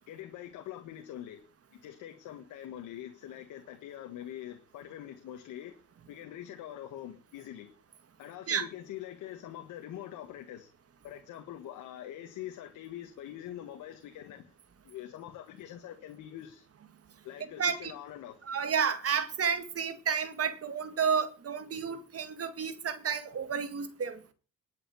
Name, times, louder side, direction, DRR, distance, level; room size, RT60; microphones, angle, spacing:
voice 1, 0.1-1.4 1.7-5.7 6.1-7.7 8.2-10.7 11.0-14.4 14.8-16.7 17.2-18.4, left 11 dB, 90° left, 1.8 m, -44 dB
voice 2, 17.6-18.0 18.5-24.2, right 6 dB, 50° right, 2.1 m, -31 dB
11.5 x 7.1 x 8.6 m
cardioid pair, 90°, 30 cm